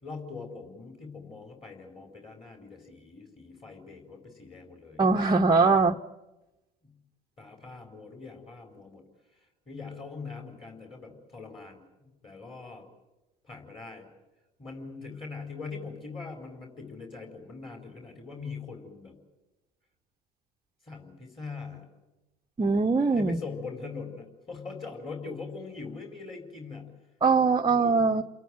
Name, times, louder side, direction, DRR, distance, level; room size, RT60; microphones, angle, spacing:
voice 1, 0.0-5.0 6.8-6.9 7.4-9.0 9.3-12.9 13.4-14.1 14.6-19.1 20.8-21.9 23.1-26.9 27.7-28.1, left 4 dB, 25° left, 3 dB, 4.5 m, -42 dB
voice 2, 5.0-6.0 22.6-23.4 27.2-28.2, right 4 dB, 20° right, 1 dB, 0.8 m, -22 dB
28.5 x 17.5 x 9.0 m, 1.0 s
hypercardioid pair, 65°, 21 cm